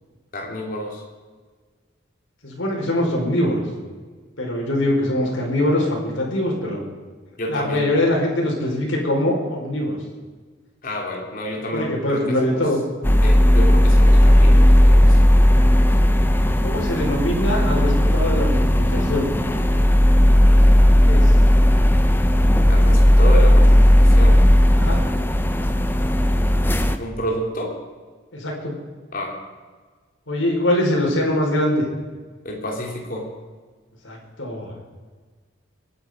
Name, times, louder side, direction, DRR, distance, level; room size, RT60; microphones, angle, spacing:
voice 1, 0.3-1.0 7.4-7.9 10.8-12.6 13.2-15.2 22.7-24.4 27.0-27.7 29.1-29.3 32.4-33.3, equal, 45° left, 0 dB, 3.3 m, -29 dB
voice 2, 2.4-3.6 4.4-6.8 7.5-10.0 11.7-12.8 16.6-19.3 21.1-21.3 24.7-25.0 28.3-28.7 30.3-31.8 34.0-34.8, left 1 dB, 80° left, -1 dB, 5.0 m, -23 dB
sound 1, 13.0-27.0, equal, 10° left, 0.7 m, -15 dB
23.0 x 9.6 x 5.1 m, 1.4 s
head